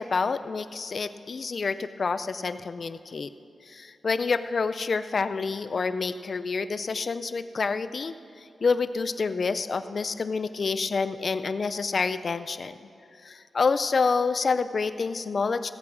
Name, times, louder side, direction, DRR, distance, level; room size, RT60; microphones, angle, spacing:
voice 1, 0.0-3.3 3.7-8.1 8.6-12.8 13.2-15.7, left 4 dB, 45° left, 13 dB, 0.5 m, -28 dB
15.5 x 8.6 x 6.1 m, 2.5 s
wide cardioid pair, 115°, 0 cm